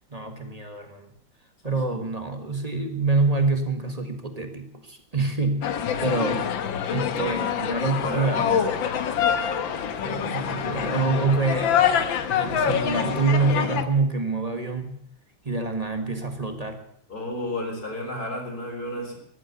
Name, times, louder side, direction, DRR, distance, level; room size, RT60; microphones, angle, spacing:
voice 1, 0.1-1.1 1.6-5.7 6.0-6.5 6.9-8.5 10.0-11.8 12.3-15.0 15.5-16.8, right 3 dB, 20° right, 6 dB, 1.6 m, -26 dB
voice 2, 1.6-2.0 7.5-8.7 17.1-19.2, left 1 dB, 50° left, 0 dB, 4.9 m, -33 dB
sound 1, 5.6-13.9, left 8 dB, 85° left, 1.8 m, -25 dB
14.0 x 11.5 x 8.2 m, 0.69 s
omnidirectional pair, 2.1 m